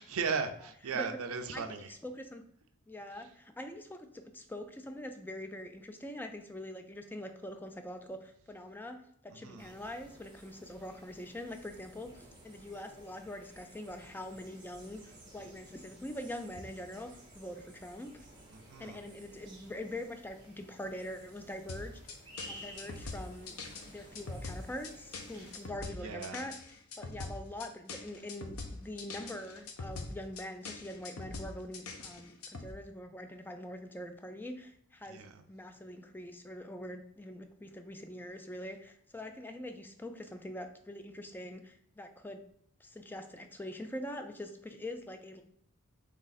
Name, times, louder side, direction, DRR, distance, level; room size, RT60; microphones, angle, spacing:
voice 1, 0.0-1.9 3.2-3.3 9.3-9.7 18.5-19.0 25.3-25.5 26.0-26.4 35.1-35.4, right 5 dB, 65° right, 7 dB, 0.5 m, -37 dB
voice 2, 2.0-2.4 2.9-9.0 9.3-18.1 18.8-22.0 22.5-23.6 23.8-26.5 27.0-35.2 35.5-42.4 42.8-45.4, left 1 dB, 10° left, 6 dB, 0.3 m, -44 dB
sound 1, 9.6-25.7, right 1 dB, 20° right, 1.0 m, -54 dB
sound 2, 21.7-32.7, left 3 dB, 75° left, 0.7 m, -43 dB
3.7 x 3.2 x 4.0 m, 0.68 s
head